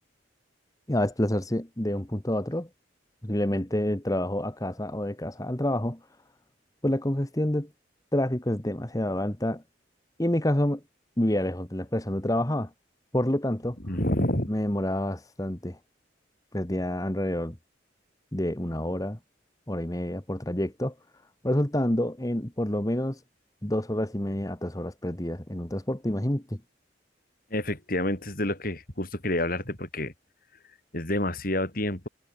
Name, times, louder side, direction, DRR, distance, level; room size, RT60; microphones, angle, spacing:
voice 1, 0.9-2.7 3.2-6.0 6.8-7.7 8.1-9.6 10.2-10.8 11.2-12.7 13.1-13.8 14.5-15.8 16.5-17.6 18.3-19.2 19.7-20.9 21.4-23.2 23.6-26.6, left 1 dB, 20° left, 1.5 m, -28 dB
voice 2, 13.8-14.5 27.5-30.1 30.9-32.1, left 1 dB, 50° left, 5.9 m, -28 dB
head